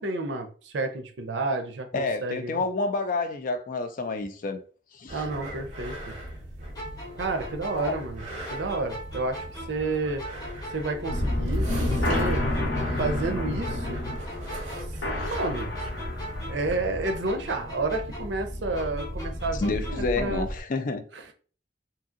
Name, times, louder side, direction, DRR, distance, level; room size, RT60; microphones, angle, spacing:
voice 1, 0.0-2.6 5.1-6.1 7.2-8.2 8.5-10.2 10.7-12.5 13.0-14.0 15.2-15.7 16.5-20.5 21.1-21.3, right 3 dB, 75° right, 0.5 m, -30 dB
voice 2, 1.9-4.6 4.9-5.2 7.7-8.0 19.6-21.0, left 3 dB, 50° left, 0.4 m, -29 dB
sound 1, 5.1-16.5, right 1 dB, 45° right, 1.2 m, -40 dB
sound 2, 6.7-9.9 10.2-13.3 13.6-16.8 17.0-20.2, equal, 20° left, 0.9 m, -41 dB
sound 3, 11.1-20.6, left 1 dB, 85° left, 0.8 m, -30 dB
2.8 x 2.6 x 2.5 m
head